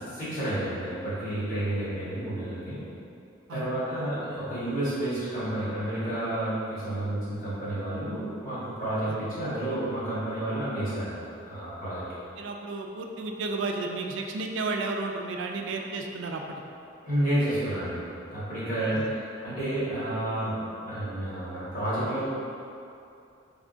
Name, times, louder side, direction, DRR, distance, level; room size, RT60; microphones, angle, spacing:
voice 1, 0.1-2.8 3.5-12.0 17.0-18.0 18.3-22.2, right 1 dB, 45° left, -12 dB, 1.4 m, -30 dB
voice 2, 12.4-16.6 18.9-19.1, right 3 dB, 75° right, 2 dB, 0.3 m, -32 dB
3.5 x 3.5 x 2.5 m, 2.6 s
head